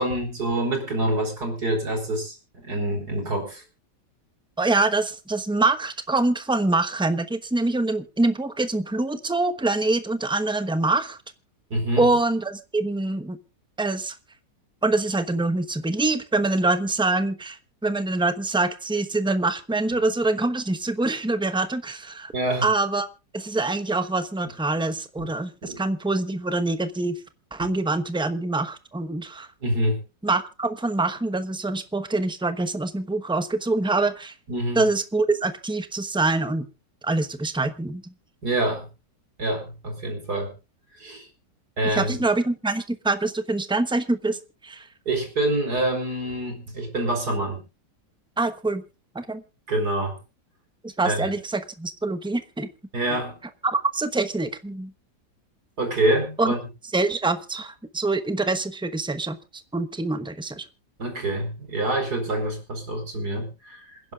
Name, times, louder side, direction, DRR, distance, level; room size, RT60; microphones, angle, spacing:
voice 1, 0.0-3.6 11.7-12.1 22.3-22.7 25.2-25.3 25.6-25.8 29.6-30.0 34.5-34.8 38.4-38.9 39.4-40.5 41.0-41.3 41.8-42.1 45.0-47.6 49.7-50.2 51.0-51.3 52.9-53.3 55.8-56.6 61.0-64.1, right 1 dB, 65° right, 3 dB, 5.1 m, -26 dB
voice 2, 4.6-11.2 12.0-13.4 13.8-14.1 14.8-22.3 22.6-23.1 23.3-27.2 27.5-29.5 30.2-34.3 34.7-36.7 37.0-38.1 41.8-44.9 48.4-48.8 49.1-49.4 50.8-52.7 53.6-54.9 56.4-56.5 56.9-59.4 59.7-60.6, right 2 dB, 5° right, 10 dB, 0.6 m, -25 dB
27.5 x 10.5 x 2.4 m, 0.29 s
omnidirectional pair, 1.9 m